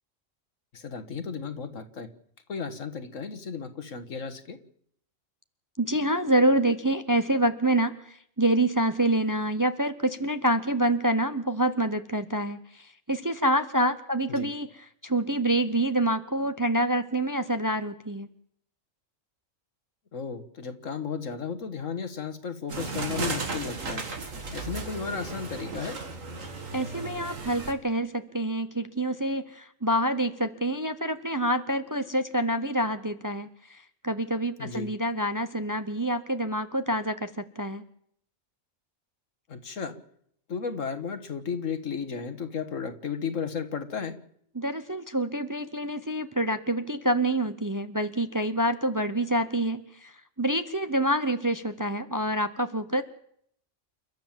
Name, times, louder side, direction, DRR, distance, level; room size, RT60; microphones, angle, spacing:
voice 1, 0.7-2.1 2.5-4.6 14.3-14.5 20.1-24.1 24.5-26.0 34.6-34.9 39.5-40.0 40.5-44.2, left 6 dB, 75° left, 9 dB, 1.9 m, -34 dB
voice 2, 5.8-14.7 15.0-18.3 26.7-37.8 44.5-53.0, right 1 dB, 20° right, 10 dB, 0.7 m, -27 dB
sound 1, 22.7-27.7, right 4 dB, 85° right, 2.5 m, -35 dB
29.0 x 12.5 x 7.4 m, 0.70 s
omnidirectional pair, 1.3 m